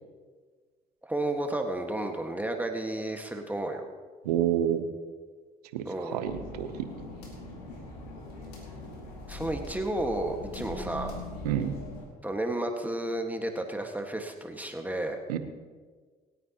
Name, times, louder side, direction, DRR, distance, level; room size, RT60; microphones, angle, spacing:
voice 1, 1.0-3.9 5.8-6.2 9.3-11.1 12.2-15.2, right 1 dB, 10° right, 3 dB, 1.6 m, -32 dB
voice 2, 4.2-4.9 5.7-6.7 11.4-11.8 15.3-15.4, right 10 dB, 85° right, 9 dB, 0.9 m, -28 dB
sound 1, 6.2-12.1, left 1 dB, 85° left, 2.2 m, -41 dB
27.5 x 9.2 x 3.0 m, 1.5 s
hypercardioid pair, 50°, 20 cm